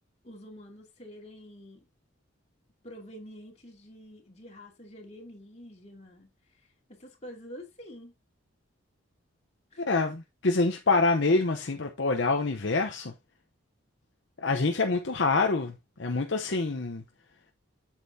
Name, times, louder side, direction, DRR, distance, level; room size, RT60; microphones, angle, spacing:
voice 1, 0.2-1.9 2.8-8.1 9.7-9.8, equal, 30° left, 2.5 m, -47 dB
voice 2, 9.8-13.1 14.4-17.0, left 3 dB, 60° left, 0.8 m, -26 dB
8.0 x 7.5 x 2.7 m
head